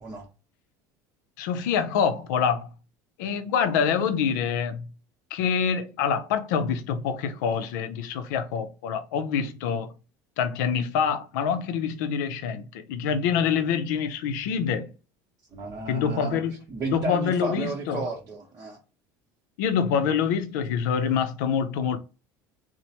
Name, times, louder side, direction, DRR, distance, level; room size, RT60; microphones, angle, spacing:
voice 1, 1.4-2.7 3.2-4.8 5.3-9.9 10.4-14.9 15.9-16.5 16.9-18.0 19.6-22.0, left 7 dB, 80° left, 0.5 m, -26 dB
voice 2, 15.5-16.4 16.7-18.8, right 3 dB, 35° right, 0.8 m, -33 dB
3.0 x 2.0 x 2.7 m
hypercardioid pair, 85°, 10 cm